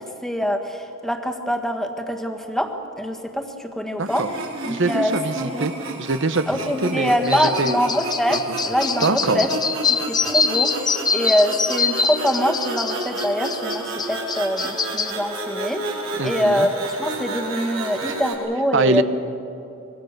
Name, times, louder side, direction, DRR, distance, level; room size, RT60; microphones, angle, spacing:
voice 1, 0.0-4.3 4.6-5.1 5.5-5.7 6.5-9.5 9.9-19.0, equal, ahead, 4 dB, 1.7 m, -24 dB
voice 2, 4.0-4.3 4.7-5.7 6.0-6.5 6.8-7.8 8.3-8.4 9.0-9.5 16.2-16.7 18.7-19.0, right 3 dB, 65° right, 11 dB, 1.0 m, -23 dB
sound 1, 4.0-18.3, right 2 dB, 90° right, 4.9 m, -31 dB
sound 2, 7.2-15.1, left 5 dB, 20° left, 0.8 m, -24 dB
25.0 x 23.5 x 6.7 m, 2.8 s
head